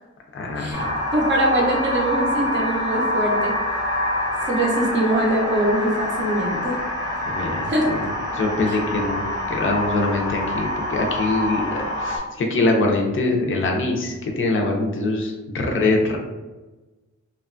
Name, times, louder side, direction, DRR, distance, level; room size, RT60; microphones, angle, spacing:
voice 1, 0.3-0.9 7.3-8.0 8.3-16.2, left 2 dB, 45° left, 1 dB, 0.5 m, -23 dB
sound 1, 0.7-12.2, left 1 dB, 10° right, 0.8 m, -26 dB
voice 2, 1.1-3.5 4.5-6.8 7.6-7.9 8.7-8.8, right 1 dB, 40° right, -1 dB, 0.5 m, -22 dB
2.8 x 2.2 x 2.4 m, 1.2 s
wide cardioid pair, 130°, 30 cm